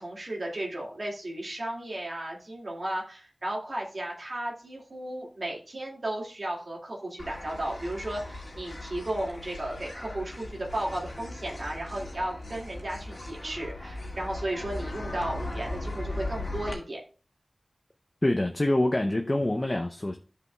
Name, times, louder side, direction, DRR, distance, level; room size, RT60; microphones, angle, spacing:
voice 1, 0.0-17.0, right 1 dB, 60° right, 2.1 m, -34 dB
sound 1, 7.2-16.7, left 2 dB, 55° left, 1.8 m, -38 dB
voice 2, 18.2-20.2, left 1 dB, 35° left, 0.7 m, -25 dB
13.0 x 5.0 x 2.3 m
wide cardioid pair, 45°, 0 cm